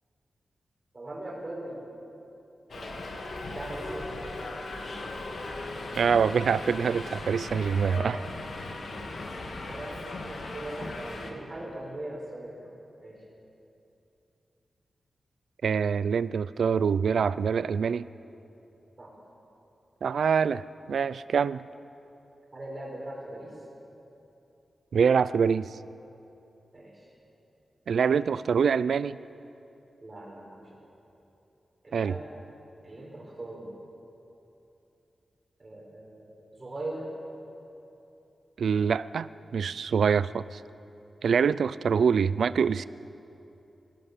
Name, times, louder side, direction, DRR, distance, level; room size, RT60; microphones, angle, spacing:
voice 1, 0.9-1.8 2.7-4.3 9.7-12.7 13.0-13.2 19.0-19.1 22.5-23.6 26.7-27.1 30.0-30.8 31.8-32.2 32.8-33.7 35.6-36.3 36.6-37.0, right 1 dB, 25° right, -2 dB, 5.0 m, -40 dB
Subway metro underground, 2.7-11.3, left 2 dB, 60° left, 2.3 m, -38 dB
voice 2, 6.0-8.2 15.6-18.1 20.0-21.6 24.9-25.7 27.9-29.2 31.9-32.2 38.6-40.6 41.2-42.9, right 6 dB, 80° right, 17 dB, 0.5 m, -25 dB
27.0 x 17.0 x 6.9 m, 2.9 s
wide cardioid pair, 175°, 0 cm